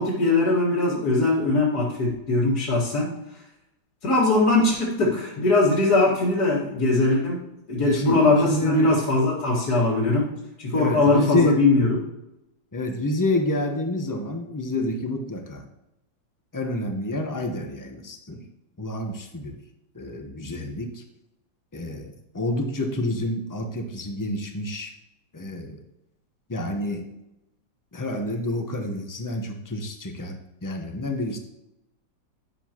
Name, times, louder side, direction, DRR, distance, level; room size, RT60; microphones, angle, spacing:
voice 1, 0.0-3.1 4.0-7.4 7.7-10.3 10.6-11.9, left 2 dB, 55° left, -8 dB, 2.4 m, -21 dB
voice 2, 7.8-9.0 10.7-11.6 12.7-15.6 16.5-18.4 18.8-19.6 19.9-21.0 21.7-24.9 25.3-25.8 26.5-27.1 27.9-30.4 30.6-31.4, left 1 dB, 15° left, 4 dB, 0.7 m, -28 dB
10.0 x 7.8 x 3.0 m, 0.90 s
omnidirectional pair, 2.1 m